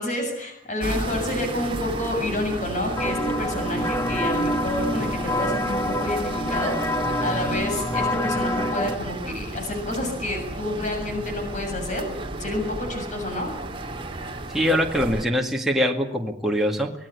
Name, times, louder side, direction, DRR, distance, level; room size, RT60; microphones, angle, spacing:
voice 1, 0.0-12.1 12.4-13.5, left 1 dB, 45° left, 4 dB, 7.1 m, -29 dB
sound 1, 0.8-15.2, right 2 dB, 30° right, 2.2 m, -33 dB
sound 2, 3.0-9.0, left 1 dB, 15° left, 0.8 m, -26 dB
voice 2, 14.5-16.9, equal, ahead, 0 dB, 2.1 m, -23 dB
26.0 x 19.0 x 8.4 m, 0.80 s
head